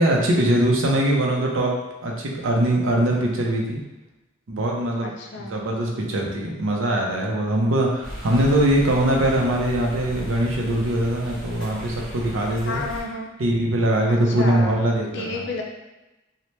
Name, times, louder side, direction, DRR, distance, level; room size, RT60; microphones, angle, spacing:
voice 1, 0.0-3.8 4.5-12.8 13.4-15.4, right 1 dB, 75° right, -1 dB, 0.5 m, -22 dB
voice 2, 5.0-5.6 12.6-13.3 14.1-14.8 15.1-15.6, left 2 dB, 60° left, 1 dB, 0.4 m, -31 dB
sound 1, 8.0-13.0, equal, 5° left, 0.7 m, -36 dB
2.8 x 2.1 x 3.1 m, 1.0 s
head